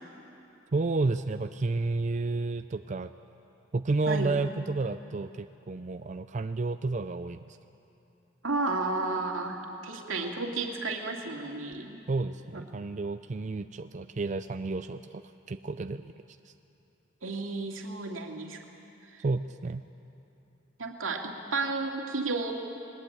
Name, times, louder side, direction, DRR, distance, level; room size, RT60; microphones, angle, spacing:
voice 1, 0.7-3.1 3.7-7.6 12.1-15.2 15.5-16.1 19.2-19.8, right 3 dB, 40° right, 9 dB, 0.4 m, -31 dB
voice 2, 8.4-12.0 17.2-18.6 19.1-19.2 20.8-22.5, right 3 dB, 90° right, 2 dB, 2.3 m, -32 dB
21.0 x 20.0 x 8.7 m, 2.8 s
head